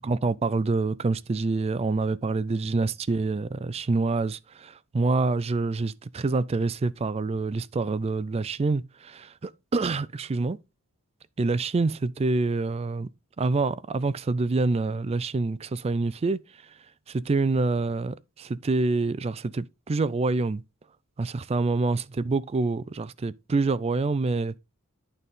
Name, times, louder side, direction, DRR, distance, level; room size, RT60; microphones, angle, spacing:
voice 1, 0.0-10.6 11.4-13.1 13.4-16.7 17.1-20.6 21.2-24.6, right 3 dB, 30° right, 0.3 m, -26 dB
11.0 x 4.1 x 3.6 m
head